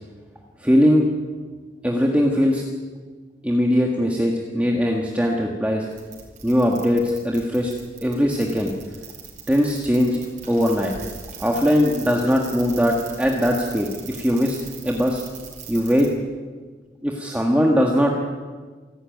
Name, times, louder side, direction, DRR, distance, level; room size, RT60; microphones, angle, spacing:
voice 1, 0.6-1.1 1.8-2.6 3.4-5.9 6.4-7.7 8.0-8.7 9.5-10.2 10.5-10.9 11.4-14.6 14.8-15.2 15.7-16.1 17.0-18.2, equal, 10° right, 0 dB, 1.8 m, -20 dB
sound 1, 5.9-16.1, right 6 dB, 45° right, 5.3 m, -40 dB
28.0 x 12.5 x 9.3 m, 1.4 s
head